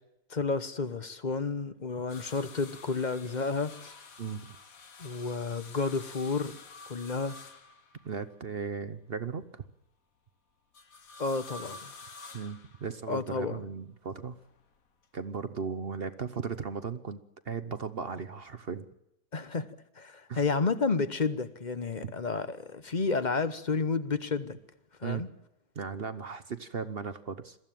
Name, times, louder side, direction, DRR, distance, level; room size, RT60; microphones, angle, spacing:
voice 1, 0.3-3.9 5.0-6.6 6.9-7.4 11.2-11.9 13.1-13.6 19.3-19.7 20.0-24.6 25.0-25.3, left 4 dB, 35° left, 13 dB, 1.0 m, -31 dB
sound 1, 2.1-8.3 10.7-13.2 14.3-15.0 16.5-16.6, left 4 dB, 65° left, 1.9 m, -49 dB
voice 2, 8.0-9.7 12.3-14.4 15.1-18.9 20.3-20.4 22.0-22.1 25.0-25.2 25.8-27.6, right 5 dB, 45° right, 12 dB, 1.0 m, -36 dB
22.5 x 14.5 x 9.1 m, 0.85 s
omnidirectional pair, 1.6 m